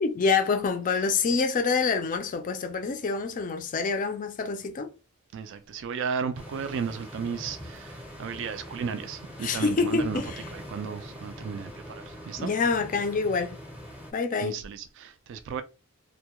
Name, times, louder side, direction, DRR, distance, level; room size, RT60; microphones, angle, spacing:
voice 1, 0.0-4.9 9.4-10.4 12.4-13.6 14.1-14.6, left 4 dB, 40° left, 0.4 m, -26 dB
voice 2, 5.3-10.2 10.5-12.5 14.4-15.6, right 6 dB, 60° right, 0.3 m, -34 dB
sound 1, 6.3-14.1, equal, 5° right, 0.6 m, -43 dB
2.2 x 2.1 x 2.9 m
head